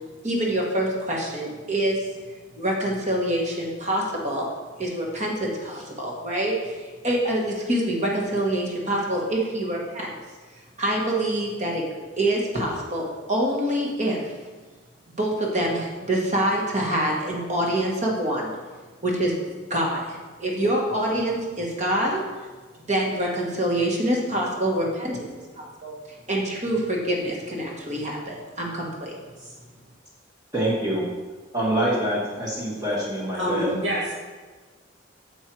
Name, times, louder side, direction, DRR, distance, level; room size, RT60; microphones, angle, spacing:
voice 1, 0.2-2.1 2.6-4.5 4.8-10.1 10.8-11.8 12.2-14.3 15.2-18.5 19.0-19.3 19.7-22.2 22.8-25.2 25.5-26.0 26.3-29.1, right 1 dB, 35° right, -1 dB, 1.5 m, -25 dB
voice 2, 30.5-31.0 31.5-33.7, right 1 dB, 20° right, -7 dB, 1.3 m, -25 dB
voice 3, 33.4-34.1, equal, 70° right, -8 dB, 1.9 m, -27 dB
7.2 x 5.5 x 4.6 m, 1.4 s
head